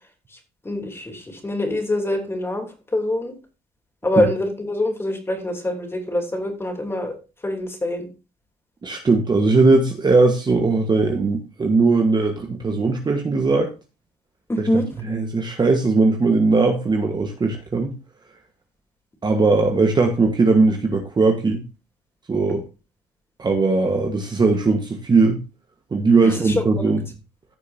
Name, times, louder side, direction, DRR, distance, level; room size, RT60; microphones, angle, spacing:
voice 1, 0.6-2.6 2.9-3.3 4.0-7.1 7.4-8.1 14.5-14.8 26.2-26.5 26.8-26.9, left 1 dB, 15° left, 3 dB, 3.2 m, -24 dB
voice 2, 8.8-13.7 14.6-17.9 19.2-21.6 22.3-22.6 23.4-25.4 25.9-27.0, right 3 dB, 25° right, 3 dB, 1.4 m, -19 dB
15.5 x 6.5 x 2.8 m, 0.31 s
cardioid pair, 110°, 17 cm